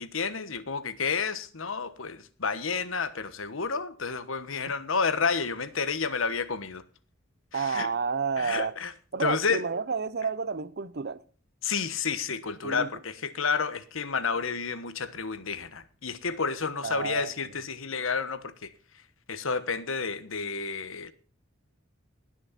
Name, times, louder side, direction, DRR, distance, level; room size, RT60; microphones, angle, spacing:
voice 1, 0.0-6.8 7.5-7.9 8.4-8.9 9.2-9.6 11.6-18.7 19.3-21.1, left 5 dB, 75° left, 1.3 m, -30 dB
voice 2, 7.5-8.7 9.1-11.2 12.6-12.9 16.8-17.5, right 5 dB, 55° right, 0.7 m, -30 dB
19.5 x 6.5 x 4.2 m
head